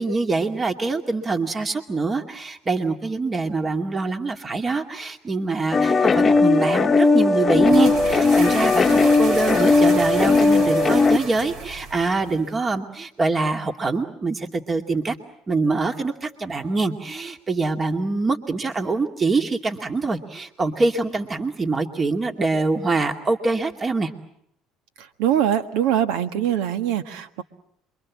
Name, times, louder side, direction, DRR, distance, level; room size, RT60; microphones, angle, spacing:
voice 1, 0.0-15.2 15.5-24.1, right 3 dB, 30° right, 5 dB, 2.4 m, -24 dB
sound 1, 5.7-11.2, left 3 dB, 25° left, 1.1 m, -17 dB
sound 2, 7.5-12.6, right 4 dB, 60° right, 4.4 m, -33 dB
voice 2, 25.2-27.4, right 10 dB, 80° right, 9 dB, 1.6 m, -22 dB
27.5 x 24.0 x 7.5 m, 0.73 s
supercardioid pair, 90°, 0 cm